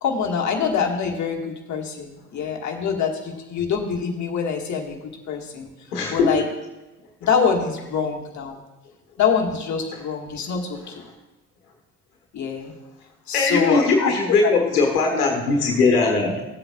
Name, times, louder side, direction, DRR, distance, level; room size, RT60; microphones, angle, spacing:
voice 1, 0.0-5.0 5.3-5.7 6.1-6.4 7.2-8.6 9.2-10.9 12.3-12.7 13.3-14.5, left 6 dB, 40° left, 0 dB, 1.6 m, -25 dB
voice 2, 5.9-6.4 9.9-10.0 13.3-16.4, left 3 dB, 80° left, 2 dB, 1.3 m, -20 dB
14.5 x 7.7 x 2.3 m, 1.0 s
figure-of-eight pair, 55°, 46 cm